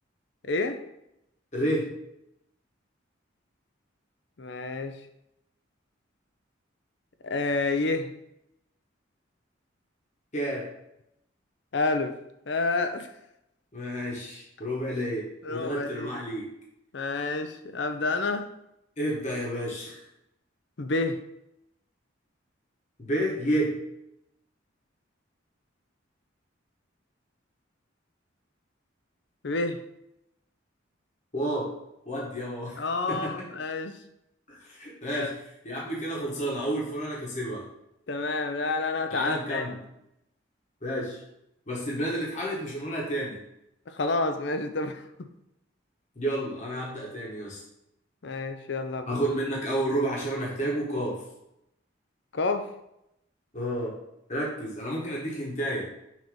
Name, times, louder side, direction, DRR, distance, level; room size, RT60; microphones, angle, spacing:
voice 1, 0.4-0.8 4.4-5.0 7.2-8.1 11.7-12.2 12.5-13.1 15.4-16.1 16.9-18.5 20.8-21.2 29.4-29.8 32.8-34.0 35.1-35.3 38.1-39.6 43.9-45.1 48.2-49.1 52.3-52.7, left 3 dB, 60° left, 7 dB, 0.6 m, -29 dB
voice 2, 1.5-1.9 10.3-10.7 13.7-16.5 19.0-20.0 23.0-23.8 31.3-31.7 32.0-33.3 34.5-35.3 35.6-37.7 39.1-39.8 40.8-41.2 41.7-43.4 46.2-47.6 49.1-51.2 53.5-54.0 54.3-55.9, right 1 dB, 40° left, -4 dB, 1.2 m, -30 dB
6.1 x 2.9 x 5.3 m, 0.82 s
head